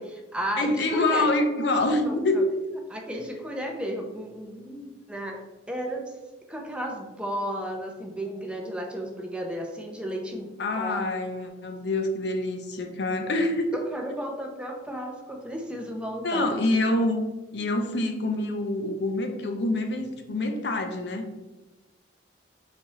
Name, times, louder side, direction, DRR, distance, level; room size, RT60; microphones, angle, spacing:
voice 1, 0.0-1.3 1.8-2.4 2.9-5.4 5.7-6.1 6.5-10.5 10.8-11.0 13.7-16.6, equal, 5° right, 1 dB, 0.5 m, -33 dB
voice 2, 0.6-2.5 10.6-13.7 16.2-17.2 17.5-21.3, left 2 dB, 60° left, 5 dB, 0.5 m, -26 dB
4.0 x 3.6 x 3.0 m, 1.1 s
head